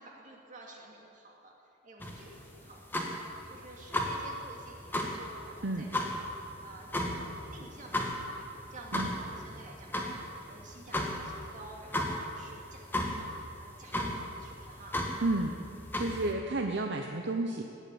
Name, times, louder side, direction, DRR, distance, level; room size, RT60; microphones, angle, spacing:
voice 1, 0.0-1.5 1.8-6.2 6.6-15.0, right 2 dB, 40° right, -1 dB, 2.4 m, -52 dB
sound 1, 2.0-16.3, left 1 dB, 10° left, 1.4 m, -36 dB
voice 2, 5.6-5.9 8.9-9.1 15.2-15.5 15.9-17.6, right 2 dB, 60° right, 3 dB, 0.8 m, -31 dB
18.0 x 8.3 x 8.8 m, 2.6 s
head